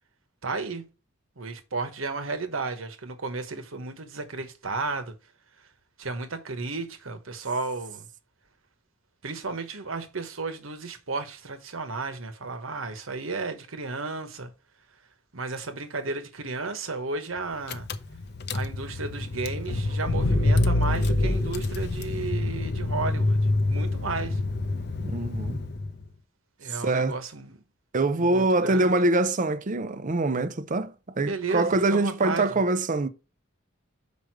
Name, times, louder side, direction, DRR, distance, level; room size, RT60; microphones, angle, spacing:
voice 1, 0.4-0.8 1.4-5.1 6.0-8.1 9.2-14.5 15.3-17.9 18.5-23.4 23.7-24.4 26.6-27.6 28.1-28.9 31.2-32.6, right 3 dB, 80° right, 1.2 m, -33 dB
Car / Engine, 17.4-17.5 17.7-26.0, left 2 dB, 55° left, 0.7 m, -26 dB
voice 2, 25.0-25.6 26.8-27.2 27.9-33.1, right 2 dB, 40° right, 0.6 m, -24 dB
6.4 x 5.1 x 4.7 m
head